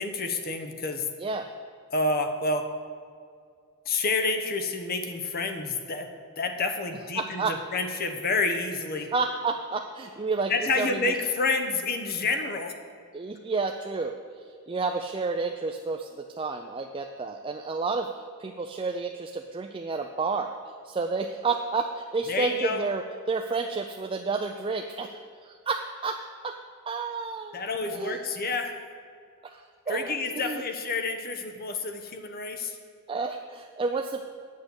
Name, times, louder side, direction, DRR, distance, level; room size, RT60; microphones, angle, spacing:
voice 1, 0.0-1.1 1.9-2.7 3.9-6.1 6.4-9.1 10.5-12.7 22.3-22.8 27.5-28.8 29.9-32.8, left 3 dB, 45° left, 5 dB, 0.9 m, -29 dB
voice 2, 7.2-7.5 9.1-10.5 10.8-11.1 13.1-14.1 14.7-16.1 16.4-18.1 18.4-20.5 20.9-23.0 23.3-25.2 25.4-26.2 26.4-26.5 26.9-27.6 27.9-28.2 29.5-29.6 29.9-30.2 30.4-30.6 33.1-34.2, right 4 dB, 25° right, 4 dB, 0.4 m, -30 dB
8.4 x 6.4 x 8.1 m, 2.2 s
head